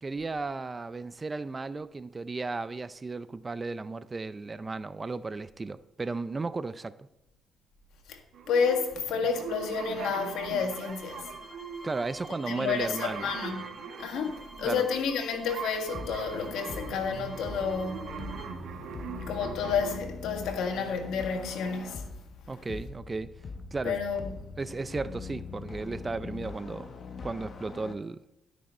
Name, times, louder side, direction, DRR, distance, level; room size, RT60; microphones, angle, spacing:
voice 1, 0.0-7.1 11.8-13.3 14.6-14.9 22.5-23.3 23.7-24.0 24.6-26.9 27.2-28.2, right 3 dB, 25° right, 0.4 m, -34 dB
sound 1, 8.3-20.0, right 7 dB, 70° right, 1.0 m, -42 dB
voice 2, 8.5-11.2 12.4-13.6 14.0-18.1 19.3-22.0 23.8-24.3, left 6 dB, 85° left, 1.6 m, -30 dB
sound 2, 9.9-18.6, equal, 5° left, 4.0 m, -50 dB
sound 3, 15.9-27.9, left 4 dB, 45° left, 1.0 m, -42 dB
12.0 x 6.2 x 4.3 m
cardioid pair, 90°, 0 cm